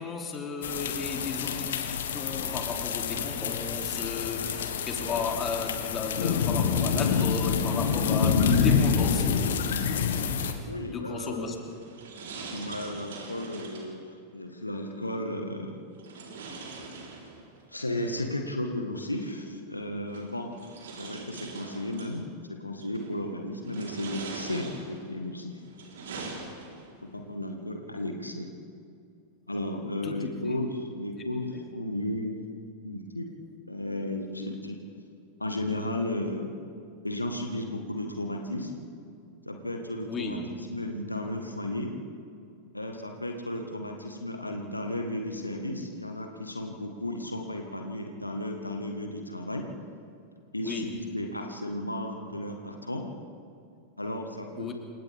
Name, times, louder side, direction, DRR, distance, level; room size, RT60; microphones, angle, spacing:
voice 1, 0.0-1.8 2.1-9.3 10.8-11.5 30.0-30.3 31.5-31.6 40.0-40.4 50.6-51.0 54.6-54.7, left 4 dB, 25° left, 2 dB, 3.1 m, -34 dB
sound 1, 0.6-10.5, left 6 dB, 60° left, 1.7 m, -27 dB
voice 2, 10.7-11.6 12.5-15.8 17.7-20.6 20.9-25.6 27.0-28.5 29.5-32.4 32.8-33.2 33.7-34.8 35.4-36.5 37.0-38.9 39.4-40.4 40.7-42.0 42.7-49.7 50.5-53.1 54.0-54.7, left 1 dB, 85° left, 3 dB, 1.7 m, -34 dB
sound 2, 11.4-14.0 16.0-17.6 19.0-19.1 20.1-22.2 22.8-23.2 23.6-25.1 25.6-27.0, right 3 dB, 60° right, 4.1 m, -42 dB
28.5 x 26.0 x 3.7 m, 2.4 s
figure-of-eight pair, 90°, 0 cm